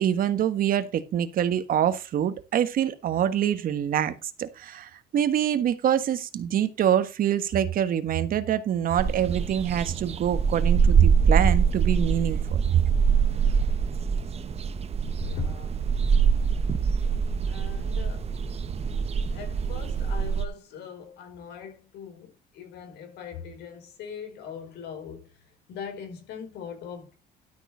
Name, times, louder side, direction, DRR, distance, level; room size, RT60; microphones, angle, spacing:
voice 1, 0.0-12.8, right 10 dB, 55° right, 1.4 m, -25 dB
sound 1, 9.0-20.4, right 6 dB, 40° right, 1.0 m, -24 dB
voice 2, 15.2-15.8 17.5-18.3 19.3-25.4 25.7-27.1, left 7 dB, 80° left, 4.9 m, -40 dB
12.0 x 6.4 x 4.6 m
cardioid pair, 110°, 17 cm